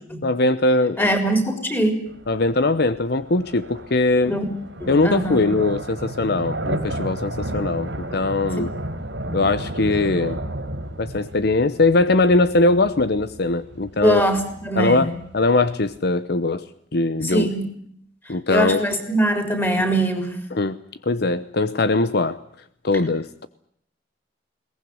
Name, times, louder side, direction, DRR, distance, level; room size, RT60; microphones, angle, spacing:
voice 1, 0.2-1.1 2.3-4.3 4.9-8.7 9.3-10.4 11.0-14.2 14.7-16.7 16.9-17.5 18.3-18.8 20.5-20.8 21.1-22.4 22.8-23.5, left 2 dB, 60° left, 13 dB, 0.9 m, -21 dB
voice 2, 1.0-2.0 4.3-4.4 4.8-5.4 14.0-15.1 17.2-17.7 18.5-20.3, right 1 dB, 10° left, 7 dB, 4.1 m, -22 dB
sound 1, 2.1-16.0, right 1 dB, 85° right, 4.2 m, -33 dB
22.0 x 18.5 x 9.6 m, 0.67 s
head